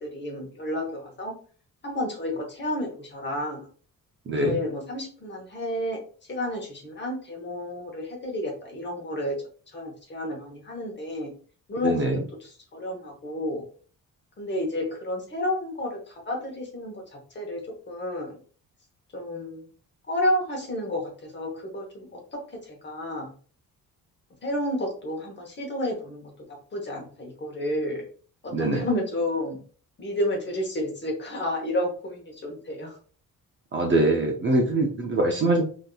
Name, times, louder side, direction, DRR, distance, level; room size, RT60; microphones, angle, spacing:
voice 1, 0.0-1.3 1.8-3.6 4.4-6.0 6.3-9.4 9.7-11.3 11.7-12.1 12.4-13.7 14.4-17.0 17.3-18.4 19.1-19.7 20.1-22.4 22.7-23.3 24.4-26.3 26.7-28.1 28.4-29.6 30.0-33.0, left 1 dB, 30° left, 0 dB, 1.0 m, -31 dB
voice 2, 4.3-4.6 11.8-12.2 28.5-28.9 33.7-35.6, right 2 dB, 35° right, 2 dB, 0.4 m, -23 dB
3.7 x 2.7 x 2.2 m, 0.42 s
wide cardioid pair, 170°, 35 cm